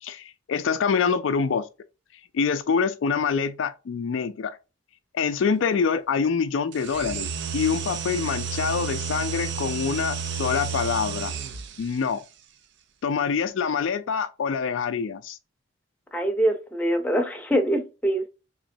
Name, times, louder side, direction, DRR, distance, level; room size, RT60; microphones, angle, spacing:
voice 1, 0.0-1.7 2.3-4.6 5.1-11.3 11.8-12.2 13.0-15.4, left 6 dB, 75° left, 0.4 m, -25 dB
sound 1, 6.7-12.0, right 6 dB, 60° right, 0.4 m, -31 dB
voice 2, 16.1-18.3, right 1 dB, 10° left, 0.6 m, -24 dB
3.7 x 3.0 x 2.6 m
head